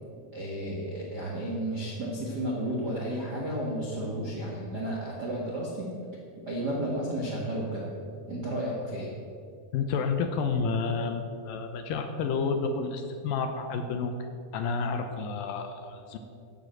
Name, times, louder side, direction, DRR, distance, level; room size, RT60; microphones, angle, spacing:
voice 1, 0.3-5.9 6.4-7.9 8.3-9.1, right 1 dB, 55° right, -4 dB, 1.1 m, -32 dB
voice 2, 9.7-14.1 14.5-16.2, left 5 dB, 75° left, 6 dB, 2.3 m, -30 dB
12.5 x 8.1 x 7.6 m, 2.4 s
omnidirectional pair, 4.5 m